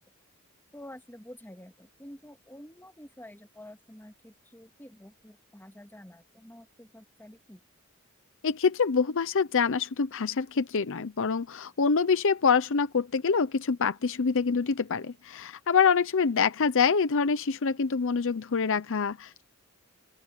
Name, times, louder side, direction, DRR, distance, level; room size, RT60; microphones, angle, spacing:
voice 1, 0.7-7.6, left 1 dB, 10° left, 3.1 m, -49 dB
voice 2, 8.4-19.4, left 5 dB, 65° left, 0.7 m, -26 dB
open air
head